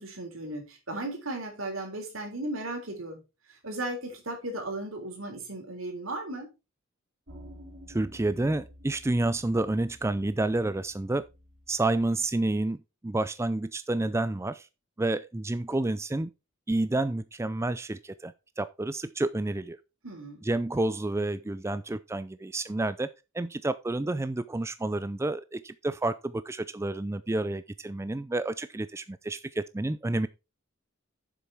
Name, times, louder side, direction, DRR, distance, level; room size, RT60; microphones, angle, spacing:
voice 1, 0.0-3.2 3.6-6.5 20.0-20.4, right 2 dB, 80° right, 3.6 m, -36 dB
sound 1, 7.3-12.4, equal, 55° right, 2.6 m, -51 dB
voice 2, 7.9-11.2 11.7-12.8 13.0-14.7 15.0-16.3 16.7-19.8 20.4-30.3, right 2 dB, 15° right, 0.4 m, -29 dB
7.5 x 6.8 x 4.6 m
head